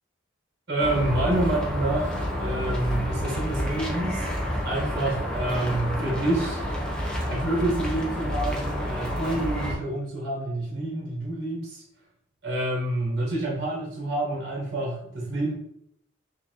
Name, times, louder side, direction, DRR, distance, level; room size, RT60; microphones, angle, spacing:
voice 1, 0.7-4.3 4.6-6.6 7.3-11.8 12.4-15.5, right 1 dB, 55° right, -3 dB, 1.3 m, -28 dB
sound 1, 0.8-9.7, equal, 5° left, 0.6 m, -29 dB
5.5 x 2.6 x 2.9 m, 0.74 s
head